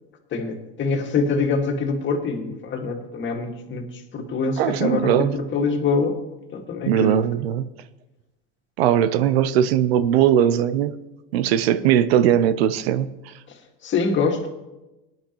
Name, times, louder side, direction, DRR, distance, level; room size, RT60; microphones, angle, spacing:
voice 1, 0.3-6.2 6.5-7.2 13.8-14.5, left 4 dB, 40° left, 3 dB, 2.0 m, -24 dB
voice 2, 4.6-5.4 6.9-7.6 8.8-11.0 11.3-13.1, right 10 dB, 80° right, 14 dB, 0.7 m, -19 dB
18.5 x 10.5 x 3.1 m, 1.0 s
hypercardioid pair, 95°, 31 cm